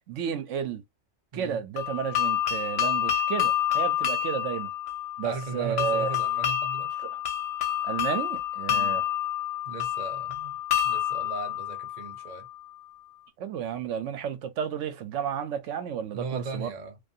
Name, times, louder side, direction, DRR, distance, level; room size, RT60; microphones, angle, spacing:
voice 1, 0.1-0.8 1.3-4.7 5.2-6.1 7.0-7.2 7.8-9.0 13.4-16.7, right 8 dB, 80° right, 1.0 m, -32 dB
sound 1, 1.8-12.6, left 11 dB, 60° left, 0.9 m, -28 dB
voice 2, 5.2-6.9 8.7-9.0 9.7-12.5 16.1-17.0, right 4 dB, 45° right, 0.6 m, -37 dB
2.5 x 2.4 x 2.6 m
omnidirectional pair, 1.3 m